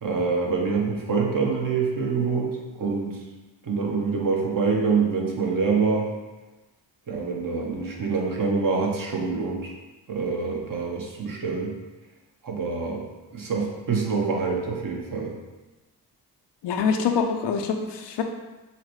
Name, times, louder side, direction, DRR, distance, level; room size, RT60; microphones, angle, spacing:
voice 1, 0.0-3.2 3.6-6.1 7.1-9.7 10.1-11.7 12.4-13.1 13.3-15.3, right 4 dB, 50° right, -1 dB, 1.0 m, -25 dB
voice 2, 16.6-18.2, left 6 dB, 70° left, 5 dB, 0.6 m, -25 dB
5.6 x 2.1 x 3.1 m, 1.1 s
cardioid pair, 70°, 44 cm